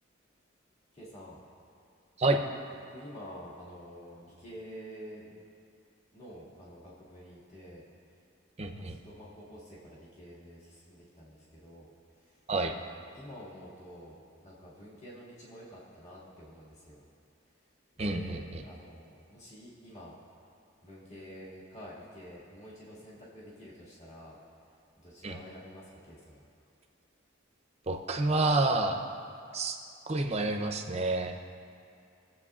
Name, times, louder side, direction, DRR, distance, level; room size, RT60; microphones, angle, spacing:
voice 1, 0.9-1.4 2.9-5.3 6.1-7.8 8.1-8.2 8.7-11.9 12.1-17.1 18.0-20.2 20.8-24.4 25.0-26.4, equal, 35° left, -8 dB, 2.0 m, -49 dB
voice 2, 8.6-9.0 12.5-12.7 18.0-18.6 25.2-25.4 27.9-29.0 29.5-29.8 30.1-31.4, right 2 dB, 30° right, 4 dB, 0.6 m, -29 dB
21.5 x 7.7 x 2.4 m, 2.4 s
head